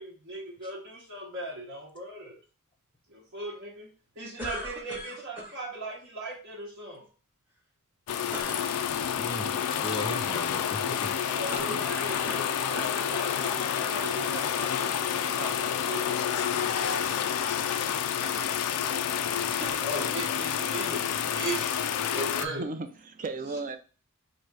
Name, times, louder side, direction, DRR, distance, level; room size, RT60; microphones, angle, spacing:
voice 1, 0.0-2.4 3.1-3.9 4.2-7.0 11.3-16.3 17.5-17.8 19.5-21.7 21.9-22.7, right 1 dB, 60° right, 0.9 m, -38 dB
sound 1, 4.4-5.6 8.3-8.7 11.5-12.5 12.8-13.1 13.9-14.0 19.6-20.5, equal, 10° right, 0.8 m, -40 dB
sound 2, 8.1-22.5, left 8 dB, 85° left, 0.4 m, -29 dB
voice 2, 8.7-11.1 13.2-14.3, left 2 dB, 25° left, 0.5 m, -39 dB
voice 3, 22.4-23.8, right 3 dB, 35° right, 0.5 m, -35 dB
3.0 x 2.7 x 4.5 m
head